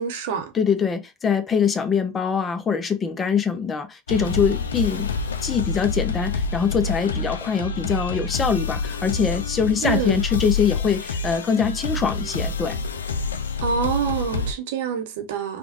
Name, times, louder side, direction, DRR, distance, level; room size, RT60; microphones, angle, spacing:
voice 1, 0.0-0.5 9.8-10.2 13.6-15.6, right 7 dB, 70° right, 0.8 m, -26 dB
voice 2, 0.5-5.1 5.4-12.8, left 6 dB, 25° left, 0.7 m, -23 dB
sound 1, 4.1-14.5, left 4 dB, 85° left, 0.4 m, -27 dB
3.6 x 2.4 x 2.4 m
hypercardioid pair, 85°, 0 cm